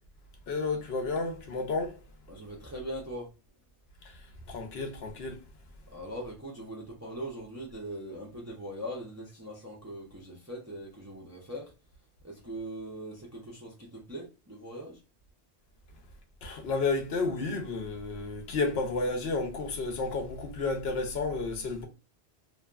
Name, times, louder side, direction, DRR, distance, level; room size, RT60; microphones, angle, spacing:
voice 1, 0.5-2.0 4.5-5.4 16.4-21.9, left 3 dB, 70° left, 0.8 m, -31 dB
voice 2, 2.3-3.3 5.9-11.7 12.2-15.0, equal, 20° right, 0.4 m, -41 dB
2.7 x 2.2 x 2.3 m
omnidirectional pair, 1.1 m